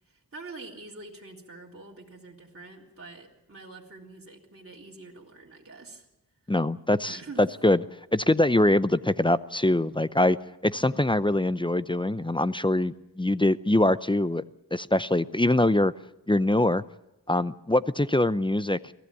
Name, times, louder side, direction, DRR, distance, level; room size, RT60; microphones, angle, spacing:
voice 1, 0.1-6.1 7.0-7.4, right 3 dB, 35° right, -2 dB, 3.7 m, -45 dB
voice 2, 6.5-7.8 8.1-10.4 10.6-14.4 14.7-15.9 16.3-16.8 17.3-18.9, left 1 dB, 15° left, 16 dB, 0.7 m, -23 dB
23.5 x 15.5 x 8.5 m, 0.90 s
cardioid pair, 70°, 38 cm